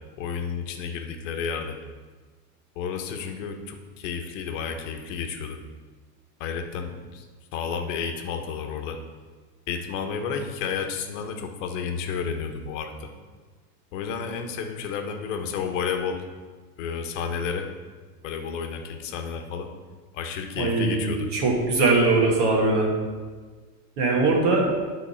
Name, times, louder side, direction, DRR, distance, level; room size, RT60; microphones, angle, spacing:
voice 1, 0.2-1.8 2.8-5.6 6.4-7.2 7.5-9.0 9.7-13.1 13.9-16.2 16.8-17.7 18.2-19.7 20.1-21.3, left 6 dB, 55° left, 5 dB, 1.2 m, -31 dB
voice 2, 20.6-22.9 24.0-24.7, right 3 dB, 50° right, -1 dB, 2.4 m, -21 dB
11.0 x 4.1 x 5.8 m, 1.4 s
supercardioid pair, 160°, 46 cm